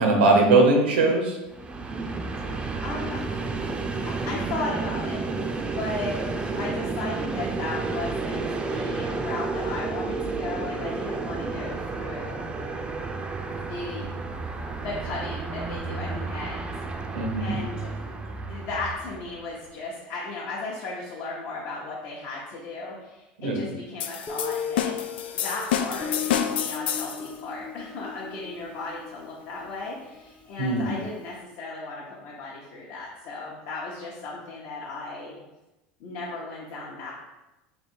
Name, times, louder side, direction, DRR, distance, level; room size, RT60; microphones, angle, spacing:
voice 1, 0.0-1.4 17.1-17.6 23.4-23.7 30.6-31.0, right 3 dB, 90° right, 2 dB, 0.9 m, -20 dB
Train, 1.5-19.6, right 3 dB, 20° right, 0.4 m, -31 dB
voice 2, 2.4-3.2 4.1-6.2 6.5-12.4 13.6-14.1 14.8-17.0 17.4-18.1 18.5-25.0 25.3-35.4 36.0-37.1, left 3 dB, 60° left, -5 dB, 0.9 m, -36 dB
sound 1, 24.0-27.3, left 9 dB, 90° left, 0.3 m, -28 dB
Guitar, 24.3-30.9, left 7 dB, 25° left, 0.6 m, -37 dB
3.4 x 2.7 x 4.3 m, 1.0 s
supercardioid pair, 105°, 5 cm